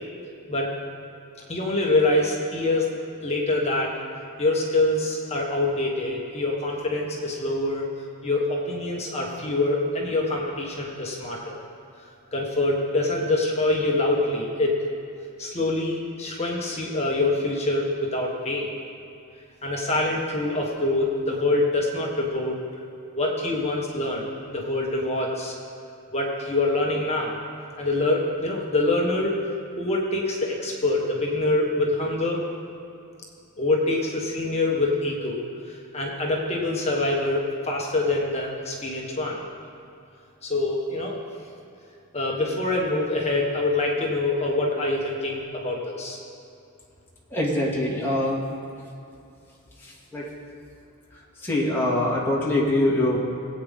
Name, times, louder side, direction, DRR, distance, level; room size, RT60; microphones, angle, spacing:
voice 1, 1.5-2.9 3.2-3.9 4.4-7.9 8.2-11.6 12.3-14.8 15.4-18.7 19.6-22.6 23.1-25.6 26.1-27.4 27.8-29.4 29.8-32.4 33.6-39.4 40.4-41.2 42.1-46.2, left 2 dB, 30° left, -1 dB, 1.5 m, -25 dB
voice 2, 47.3-48.4 49.8-50.3 51.4-53.2, left 1 dB, 10° left, -5 dB, 2.3 m, -23 dB
20.5 x 8.7 x 3.7 m, 2.6 s
head